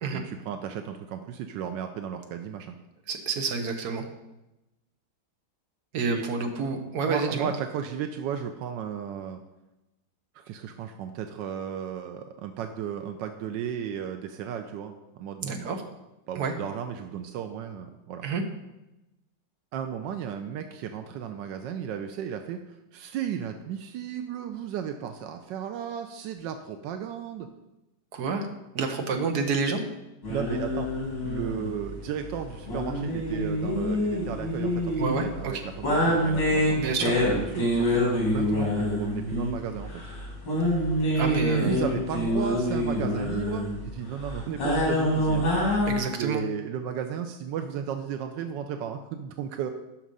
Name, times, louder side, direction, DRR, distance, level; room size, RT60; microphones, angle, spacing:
voice 1, 0.1-2.8 6.0-6.2 7.1-9.4 10.3-15.7 16.3-18.2 19.7-22.6 22.9-27.5 30.3-40.0 41.5-45.7 46.1-49.7, right 8 dB, 85° right, 6 dB, 1.3 m, -34 dB
voice 2, 3.1-4.0 5.9-7.5 15.4-15.8 16.3-16.5 18.2-18.4 28.1-28.5 28.7-29.8 35.0-35.6 36.8-37.1 41.1-41.8 45.9-46.5, right 4 dB, 60° right, 4 dB, 1.6 m, -28 dB
sound 1, 30.2-46.0, left 1 dB, 80° left, 3.7 m, -27 dB
10.0 x 6.0 x 5.4 m, 0.97 s
omnidirectional pair, 2.0 m